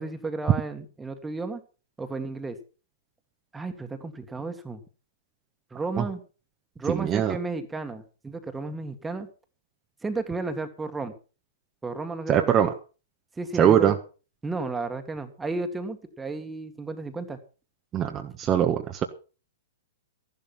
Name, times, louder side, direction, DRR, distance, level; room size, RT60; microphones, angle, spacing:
voice 1, 0.0-1.6 2.0-2.6 3.5-4.8 5.7-6.2 6.8-9.3 10.0-11.2 11.8-12.7 13.4-14.0 14.4-17.4, right 3 dB, 10° right, 7 dB, 2.0 m, -33 dB
voice 2, 6.9-7.4 12.3-12.7 13.6-13.9 17.9-19.0, right 9 dB, 25° right, 4 dB, 1.4 m, -22 dB
13.5 x 11.5 x 5.6 m, 0.36 s
hypercardioid pair, 110°, 0 cm